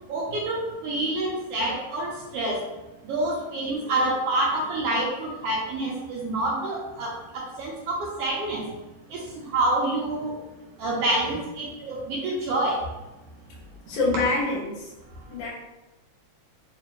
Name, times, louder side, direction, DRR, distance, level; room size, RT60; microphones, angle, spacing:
voice 1, 0.1-2.6 3.1-7.1 7.6-8.6 9.1-10.3 10.8-12.8, right 2 dB, 75° right, -3 dB, 1.4 m, -27 dB
voice 2, 13.9-14.9 15.3-15.5, left 3 dB, 55° left, -6 dB, 1.4 m, -26 dB
4.6 x 2.4 x 2.9 m, 1.0 s
omnidirectional pair, 3.3 m